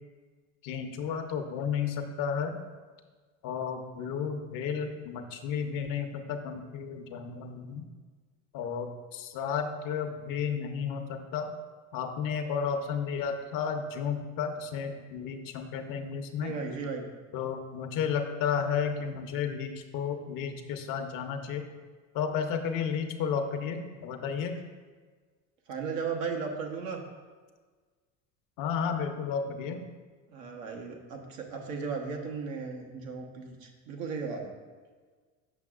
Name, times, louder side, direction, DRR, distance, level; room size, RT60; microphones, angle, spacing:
voice 1, 0.6-2.6 3.4-7.9 8.5-11.5 11.9-16.5 17.3-21.7 22.1-24.6 28.6-29.8, left 7 dB, 60° left, 6 dB, 0.8 m, -32 dB
voice 2, 16.4-17.0 25.7-27.0 30.3-34.5, right 5 dB, 85° right, 1 dB, 1.0 m, -36 dB
6.8 x 5.8 x 2.4 m, 1.5 s
supercardioid pair, 95°, 38 cm